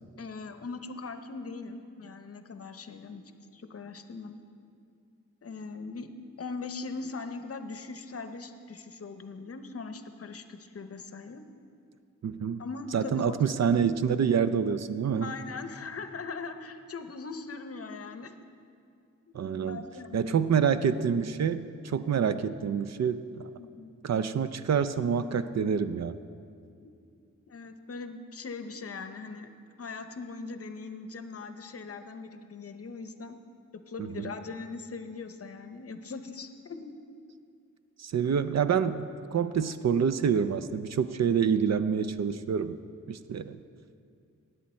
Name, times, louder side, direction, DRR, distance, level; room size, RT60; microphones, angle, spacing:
voice 1, 0.2-3.2 3.5-4.4 5.4-6.1 6.4-11.4 12.6-14.0 15.2-18.5 19.3-20.4 23.6-23.9 26.8-26.9 27.5-29.5 29.8-33.4 33.9-36.9, left 4 dB, 50° left, 8 dB, 0.7 m, -40 dB
voice 2, 12.2-12.6 12.9-15.3 19.3-19.8 20.1-23.5 24.0-26.2 34.0-34.3 38.0-42.8 43.1-43.6, right 7 dB, 60° right, 12 dB, 0.5 m, -27 dB
18.0 x 8.5 x 4.3 m, 2.4 s
wide cardioid pair, 135°, 31 cm